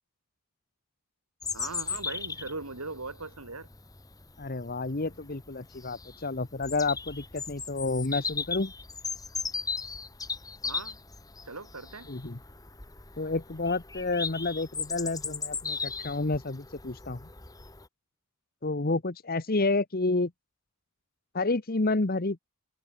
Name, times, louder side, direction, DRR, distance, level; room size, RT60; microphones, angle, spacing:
Bird vocalization bird call bird song, 1.4-17.9, left 5 dB, 15° left, 2.0 m, -37 dB
voice 1, 1.5-3.7 10.6-11.0 11.4-12.1, right 3 dB, 85° right, 4.4 m, -39 dB
voice 2, 4.4-8.7 12.1-12.4 13.2-17.3 18.6-20.3 21.3-22.4, left 3 dB, 40° left, 1.1 m, -30 dB
head